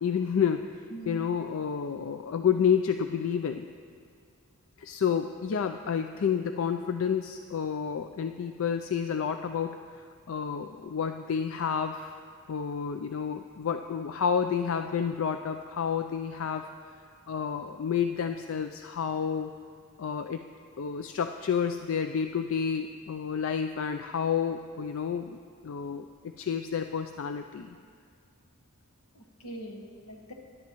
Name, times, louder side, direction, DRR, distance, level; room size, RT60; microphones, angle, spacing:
voice 1, 0.0-3.7 4.8-9.8 10.3-12.2 12.5-16.7 17.3-19.5 20.0-20.4 20.8-25.4 25.6-26.1 26.4-27.8, left 7 dB, 60° left, 7 dB, 0.4 m, -30 dB
voice 2, 0.9-1.3 29.1-30.3, right 1 dB, 85° left, 2 dB, 1.4 m, -42 dB
20.5 x 11.0 x 3.0 m, 2.2 s
head